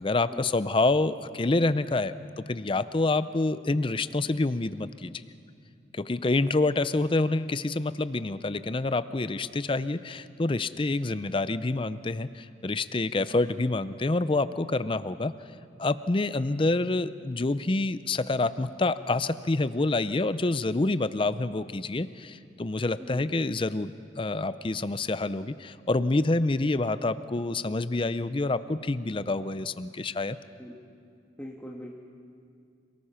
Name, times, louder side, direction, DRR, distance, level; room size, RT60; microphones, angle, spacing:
voice 1, 0.0-5.1 5.9-15.3 15.8-23.9 24.2-30.4, left 2 dB, 30° left, 14 dB, 0.5 m, -27 dB
voice 2, 31.4-32.0, equal, 10° left, -1 dB, 1.4 m, -41 dB
27.5 x 18.5 x 5.8 m, 2.3 s
head